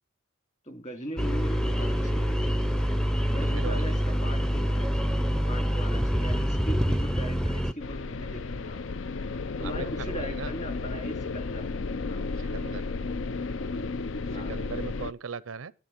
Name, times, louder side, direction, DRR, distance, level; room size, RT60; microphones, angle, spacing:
voice 1, 0.6-2.5 3.3-8.8 9.6-11.7 12.1-12.2 14.3-14.5, equal, 35° left, 2.8 m, -39 dB
sound 1, 1.2-7.7, equal, 5° left, 0.6 m, -26 dB
voice 2, 3.4-3.9 9.6-10.5 12.4-12.8 14.3-15.7, right 5 dB, 90° right, 0.6 m, -38 dB
sound 2, 7.8-15.1, left 3 dB, 70° left, 0.6 m, -33 dB
11.5 x 10.0 x 8.0 m
head